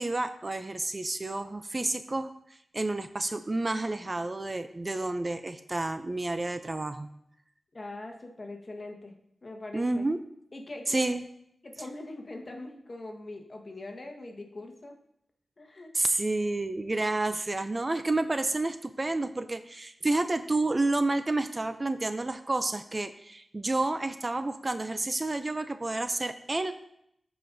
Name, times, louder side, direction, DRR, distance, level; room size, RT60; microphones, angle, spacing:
voice 1, 0.0-7.1 9.7-10.2 10.9-11.2 15.9-26.7, right 2 dB, 30° right, 10 dB, 0.4 m, -30 dB
voice 2, 7.7-9.1 9.4-10.1 10.5-11.1 11.6-14.9 15.6-15.9, left 2 dB, 40° left, 3 dB, 1.3 m, -42 dB
14.0 x 5.0 x 2.6 m, 0.74 s
wide cardioid pair, 75°, 0 cm